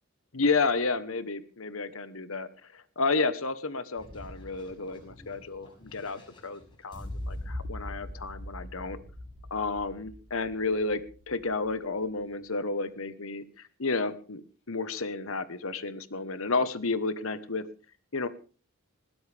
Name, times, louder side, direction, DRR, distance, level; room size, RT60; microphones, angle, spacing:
voice 1, 0.3-9.0 9.5-17.7 18.1-18.3, left 3 dB, 65° left, 14 dB, 1.2 m, -31 dB
sound 1, 4.0-11.9, left 1 dB, 20° left, 6.0 m, -43 dB
20.5 x 16.0 x 3.5 m, 0.38 s
head